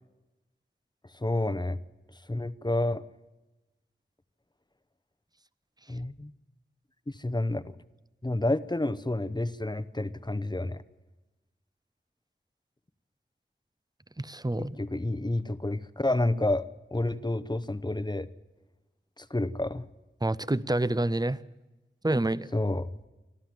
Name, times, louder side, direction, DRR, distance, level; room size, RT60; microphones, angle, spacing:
voice 1, 1.1-1.8 2.3-3.0 5.9-6.3 7.1-7.7 8.2-10.8 14.6-18.3 19.2-19.9 22.5-22.9, left 2 dB, 20° left, 14 dB, 0.8 m, -29 dB
voice 2, 14.2-14.8 20.2-21.4 22.0-22.5, right 1 dB, 20° right, 17 dB, 0.6 m, -27 dB
25.5 x 13.5 x 7.7 m, 1.1 s
wide cardioid pair, 50°, 21 cm